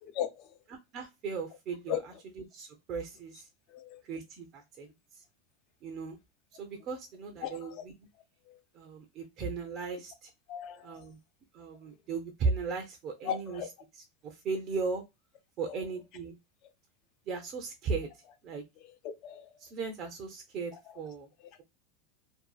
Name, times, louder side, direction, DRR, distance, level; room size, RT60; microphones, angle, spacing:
voice 1, 0.2-0.5 1.9-2.0 3.7-4.0 7.4-7.8 8.5-8.6 10.5-11.0 13.3-13.7 15.6-15.8 19.2-19.5, left 10 dB, 50° left, 0.5 m, -36 dB
voice 2, 0.9-2.0 2.5-3.5 4.0-5.2 5.8-6.2 6.6-7.7 8.7-10.3 10.8-11.2 11.5-13.6 14.2-15.0 15.6-16.4 17.3-18.6 19.6-21.3, right 4 dB, 45° right, 0.5 m, -36 dB
2.5 x 2.3 x 2.3 m
supercardioid pair, 120°, 0 cm